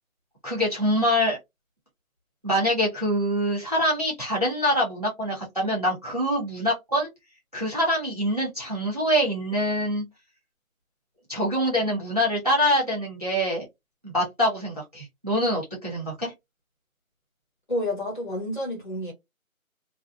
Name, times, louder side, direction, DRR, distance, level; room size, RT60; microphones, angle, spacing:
voice 1, 0.4-1.4 2.4-7.1 7.5-10.0 11.3-13.7 14.0-16.3, equal, 30° right, 0.9 m, -25 dB
voice 2, 17.7-19.1, left 1 dB, 35° left, 1.2 m, -29 dB
2.5 x 2.2 x 2.4 m
figure-of-eight pair, 175°, 42 cm